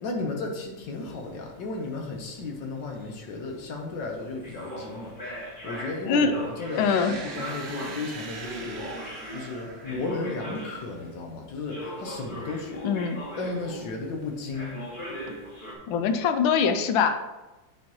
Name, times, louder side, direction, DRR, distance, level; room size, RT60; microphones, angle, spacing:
voice 1, 0.0-12.9 13.3-14.8, left 3 dB, 70° left, 2 dB, 1.7 m, -34 dB
sound 1, 0.9-11.1 11.7-14.2 14.5-15.7, equal, 30° left, 1.4 m, -40 dB
sound 2, 6.6-10.6, right 4 dB, 50° right, 0.8 m, -42 dB
voice 2, 6.8-7.1 12.8-13.3 15.9-17.2, left 6 dB, 90° left, 8 dB, 1.4 m, -23 dB
8.6 x 5.5 x 3.1 m, 1.1 s
omnidirectional pair, 2.1 m